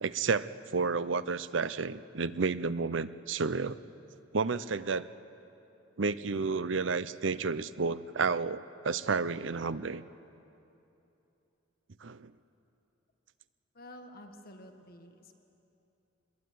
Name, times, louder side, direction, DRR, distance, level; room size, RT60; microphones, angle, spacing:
voice 1, 0.0-3.8 4.3-5.1 6.0-10.0 12.0-12.3, right 4 dB, 70° right, 15 dB, 0.7 m, -31 dB
voice 2, 13.7-15.4, left 1 dB, 50° left, 5 dB, 1.6 m, -50 dB
23.5 x 21.0 x 9.4 m, 2.9 s
head